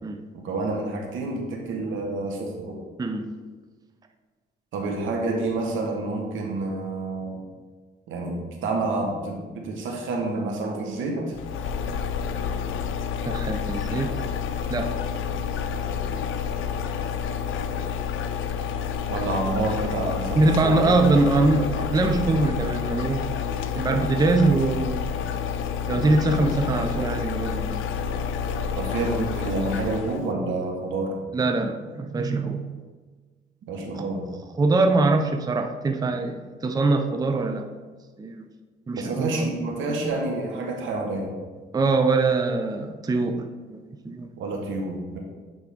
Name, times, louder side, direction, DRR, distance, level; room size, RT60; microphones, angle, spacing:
voice 1, 0.3-2.8 4.7-7.4 8.1-11.3 19.1-20.8 28.8-31.1 33.7-34.3 38.9-41.3 44.4-45.2, right 2 dB, 80° right, 1 dB, 1.3 m, -28 dB
voice 2, 3.0-3.3 13.3-14.2 14.7-15.0 20.4-23.3 23.8-25.1 25.9-27.8 31.3-32.7 33.9-34.1 34.6-37.7 38.2-38.5 38.9-39.5 41.7-44.3, right 3 dB, 20° right, 6 dB, 0.5 m, -23 dB
sound 1, 11.3-30.3, left 7 dB, 85° left, 0.5 m, -29 dB
9.1 x 3.7 x 3.6 m, 1.4 s
cardioid pair, 90°, 20 cm